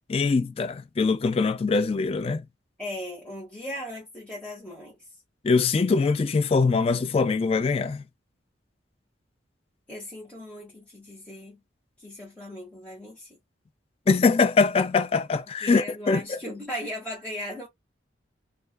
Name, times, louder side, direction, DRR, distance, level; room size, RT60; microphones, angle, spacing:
voice 1, 0.1-2.4 5.4-8.0 14.1-16.4, left 4 dB, 30° left, 0.3 m, -23 dB
voice 2, 2.8-5.0 9.9-11.6 12.0-13.4 15.6-17.7, left 1 dB, 5° left, 1.0 m, -37 dB
2.4 x 2.3 x 2.2 m
head